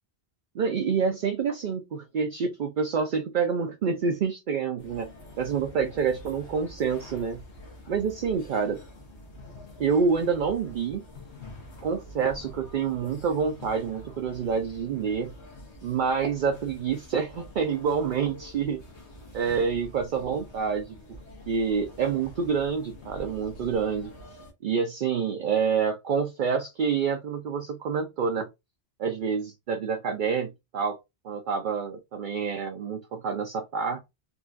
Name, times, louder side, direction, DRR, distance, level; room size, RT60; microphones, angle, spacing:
voice 1, 0.5-5.1 5.4-7.4 7.9-8.8 9.8-11.0 11.8-15.3 15.8-18.8 19.3-21.2 21.5-24.1 24.6-28.5 29.0-31.0 31.2-34.0, right 6 dB, 60° right, 0.6 m, -27 dB
sound 1, 4.8-24.5, left 1 dB, 85° left, 1.4 m, -46 dB
3.8 x 2.3 x 2.4 m
omnidirectional pair, 1.1 m